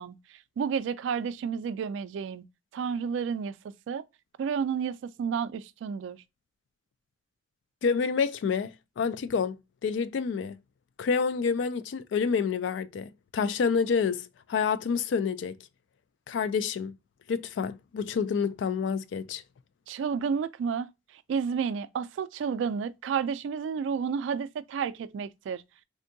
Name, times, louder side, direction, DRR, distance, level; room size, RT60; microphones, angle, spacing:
voice 1, 0.0-2.4 2.7-3.5 3.9-4.0 4.4-6.2 19.9-25.6, right 6 dB, 85° right, 0.3 m, -31 dB
voice 2, 7.8-9.6 9.8-10.6 11.0-15.6 16.3-16.9 17.3-19.4, left 6 dB, 80° left, 0.3 m, -28 dB
3.5 x 2.6 x 2.6 m
head